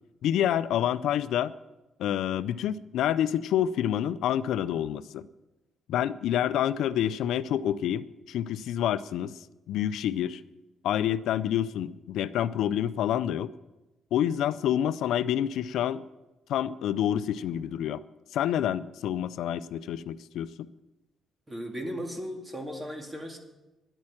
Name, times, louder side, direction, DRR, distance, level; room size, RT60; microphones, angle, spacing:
voice 1, 0.2-1.5 2.0-5.3 5.9-9.3 9.7-10.4 10.8-13.5 14.1-16.1 16.5-18.0 18.3-20.7, left 10 dB, 80° left, 15 dB, 0.4 m, -28 dB
voice 2, 21.5-23.4, equal, 20° right, 3 dB, 2.3 m, -36 dB
10.5 x 8.7 x 8.8 m, 1.0 s
cardioid pair, 105°, 0 cm